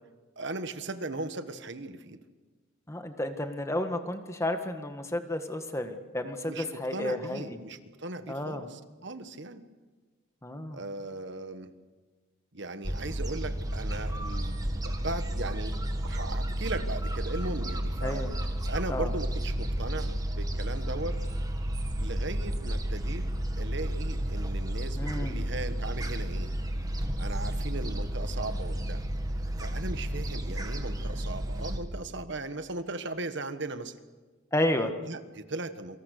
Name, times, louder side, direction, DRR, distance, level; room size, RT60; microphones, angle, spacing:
voice 1, 0.4-2.2 6.5-9.6 10.7-11.7 12.5-15.8 16.0-21.2 22.0-23.3 23.6-26.5 27.2-29.0 29.6-34.0 35.1-36.0, right 2 dB, 60° right, 10 dB, 1.5 m, -38 dB
voice 2, 2.9-7.6 8.3-8.7 10.4-10.8 18.0-18.3 18.9-19.1 25.0-25.4 34.5-34.9, left 1 dB, 15° left, 7 dB, 1.6 m, -31 dB
Gull seagull, 12.8-31.8, right 1 dB, 20° right, 1.8 m, -32 dB
28.0 x 25.0 x 6.7 m, 1.3 s
head